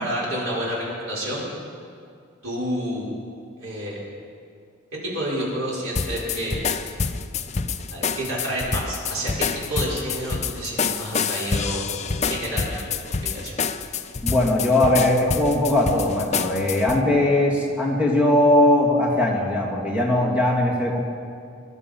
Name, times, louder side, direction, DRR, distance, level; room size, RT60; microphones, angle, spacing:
voice 1, 0.0-1.4 2.4-3.1 3.6-4.0 5.1-6.8 7.9-11.8 12.2-13.6, equal, 80° right, -6 dB, 5.5 m, -29 dB
sound 1, 5.9-17.0, left 5 dB, 35° left, 0.5 m, -27 dB
voice 2, 14.2-21.0, left 1 dB, 10° right, -3 dB, 2.4 m, -20 dB
22.0 x 11.5 x 5.5 m, 2.3 s
head